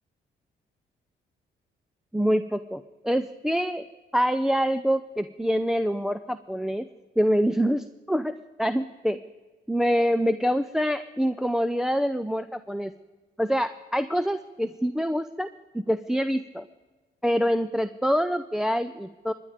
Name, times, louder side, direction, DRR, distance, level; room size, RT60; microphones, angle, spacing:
voice 1, 2.1-3.8 4.1-6.9 7.2-9.2 9.7-12.9 13.4-15.5 15.7-16.6 17.2-19.3, equal, ahead, 10 dB, 0.5 m, -25 dB
23.0 x 10.5 x 5.0 m, 1.3 s
cardioid pair, 90°, 20 cm